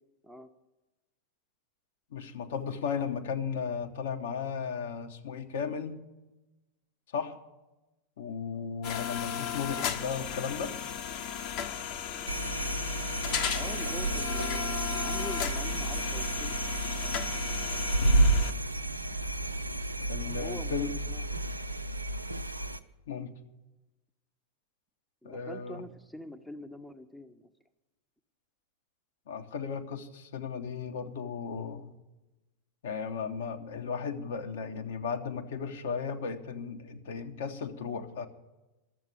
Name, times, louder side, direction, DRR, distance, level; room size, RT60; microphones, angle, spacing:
voice 1, 2.1-6.0 7.1-7.4 8.2-10.8 18.0-18.3 20.1-20.9 23.1-23.3 25.2-25.8 29.3-31.9 32.8-38.3, left 6 dB, 60° left, 5 dB, 1.0 m, -35 dB
sound 1, 8.8-18.5, left 8 dB, 45° left, 0.9 m, -35 dB
sound 2, 12.3-22.8, right 2 dB, 85° right, 0.5 m, -31 dB
voice 2, 13.5-16.5 20.2-21.2 25.2-27.5, equal, ahead, 8 dB, 0.7 m, -44 dB
12.5 x 7.4 x 9.7 m, 1.1 s
figure-of-eight pair, 90°, 0 cm